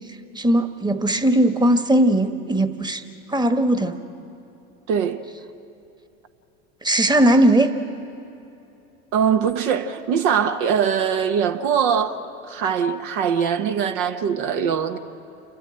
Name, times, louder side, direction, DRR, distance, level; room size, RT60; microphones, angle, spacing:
voice 1, 0.3-3.0 3.3-4.0 6.8-7.7, right 1 dB, 10° right, 1.4 m, -18 dB
voice 2, 4.9-5.2 9.1-12.2 12.5-15.0, right 7 dB, 60° right, 1.3 m, -22 dB
29.0 x 13.0 x 8.9 m
hypercardioid pair, 85°, 43 cm